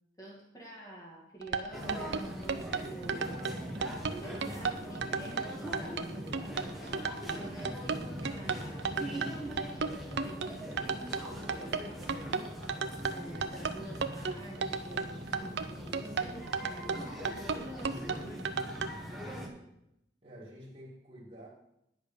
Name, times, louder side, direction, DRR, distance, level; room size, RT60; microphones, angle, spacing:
voice 1, 0.2-3.4 4.0-12.0 13.1-16.5 16.9-18.6, right 1 dB, 20° left, -4 dB, 1.9 m, -49 dB
sound 1, 1.4-18.9, right 5 dB, 70° right, 0.6 m, -34 dB
sound 2, 1.7-19.5, equal, ahead, 1.3 m, -41 dB
voice 2, 19.2-19.7 20.2-21.5, equal, 30° right, -8 dB, 1.9 m, -50 dB
10.5 x 5.1 x 6.8 m, 0.83 s
head